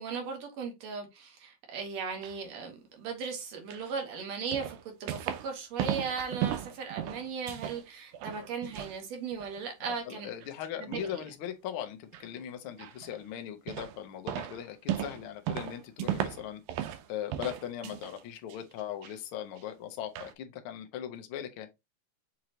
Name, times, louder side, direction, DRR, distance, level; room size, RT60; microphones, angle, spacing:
voice 1, 0.0-10.3 10.8-11.2, right 5 dB, 70° right, 2.2 m, -37 dB
sound 1, 1.9-2.4 3.7-3.9 4.5-5.5 5.8-7.8 8.1-9.0 9.3-10.0 10.4-10.5 10.9-11.2 12.1-12.3 12.8-13.2 13.7-14.0 14.3-17.1 17.3-18.2 18.5-19.1 19.6-19.7 20.2-20.3, right 11 dB, 90° right, 2.1 m, -36 dB
voice 2, 9.9-16.6 17.1-21.7, left 10 dB, 75° left, 1.2 m, -39 dB
6.4 x 2.9 x 2.8 m
omnidirectional pair, 3.4 m